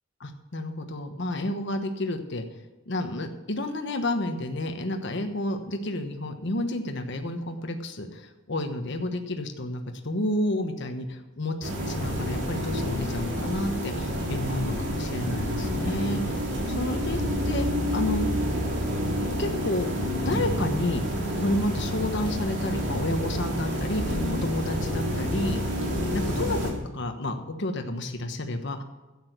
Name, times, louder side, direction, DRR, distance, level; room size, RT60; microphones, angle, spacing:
voice 1, 0.2-2.4 2.9-16.2 16.7-17.2 17.4-17.7 17.9-18.3 19.4-21.0 21.4-25.6 26.1-28.8, left 1 dB, 60° left, 5 dB, 1.2 m, -30 dB
sound 1, 11.6-26.7, equal, 60° right, 3.0 m, -28 dB
12.0 x 8.8 x 6.1 m, 1.1 s
head